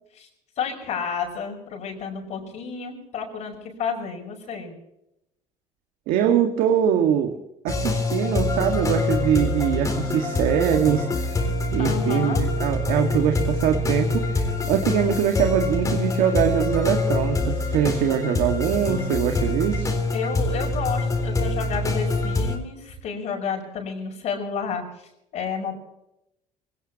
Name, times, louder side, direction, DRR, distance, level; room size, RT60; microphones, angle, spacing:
voice 1, 0.6-4.7 11.8-12.4 20.1-25.7, left 6 dB, 55° left, 0 dB, 5.7 m, -31 dB
voice 2, 6.1-7.4 7.6-11.4 11.7-19.9, right 9 dB, 85° right, 4 dB, 1.9 m, -23 dB
sound 1, 7.7-22.6, left 2 dB, 25° left, 4.1 m, -25 dB
25.5 x 18.5 x 3.0 m, 0.82 s
cardioid pair, 135°, 14 cm